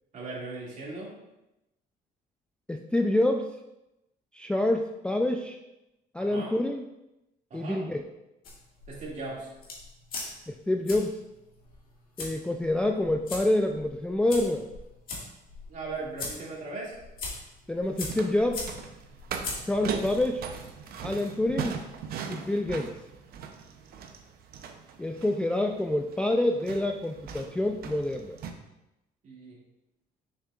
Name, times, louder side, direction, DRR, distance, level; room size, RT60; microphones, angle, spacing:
voice 1, 0.1-1.2 6.2-6.5 7.5-7.9 8.9-9.5 15.7-17.0 29.2-29.6, right 3 dB, 45° right, -3 dB, 2.2 m, -38 dB
voice 2, 2.7-3.5 4.3-5.6 6.1-6.8 7.5-8.0 10.5-11.2 12.2-14.7 17.7-18.7 19.7-20.4 21.0-21.8 22.3-23.0 25.0-28.4, left 1 dB, 5° left, 2 dB, 0.3 m, -27 dB
sound 1, 8.4-22.0, left 3 dB, 60° left, 1.9 m, -42 dB
sound 2, 17.8-28.5, right 6 dB, 65° right, 0.7 m, -39 dB
6.7 x 6.4 x 2.4 m, 0.93 s
cardioid pair, 110°, 17 cm